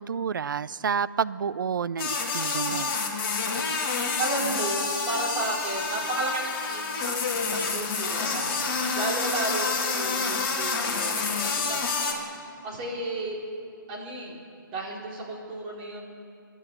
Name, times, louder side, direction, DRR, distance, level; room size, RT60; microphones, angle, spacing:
voice 1, 0.0-3.0, right 6 dB, 65° right, 17 dB, 0.6 m, -29 dB
sound 1, 2.0-12.1, left 4 dB, 35° left, 3.3 m, -28 dB
voice 2, 4.2-7.2 7.5-8.7 8.9-12.2 12.6-13.4 13.9-14.4 14.7-16.1, right 2 dB, 25° right, -3 dB, 4.2 m, -33 dB
28.5 x 11.0 x 8.3 m, 2.4 s
hypercardioid pair, 155°, 12 cm